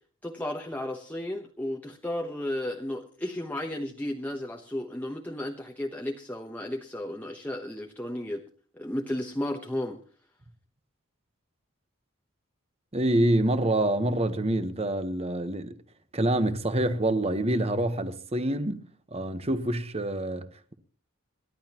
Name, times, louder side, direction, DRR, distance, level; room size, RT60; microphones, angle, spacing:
voice 1, 0.2-8.4 8.7-10.0, left 1 dB, 10° left, 1.0 m, -33 dB
voice 2, 12.9-15.8 16.1-18.9 19.1-20.7, right 1 dB, 30° right, 1.2 m, -26 dB
27.5 x 11.5 x 3.0 m
head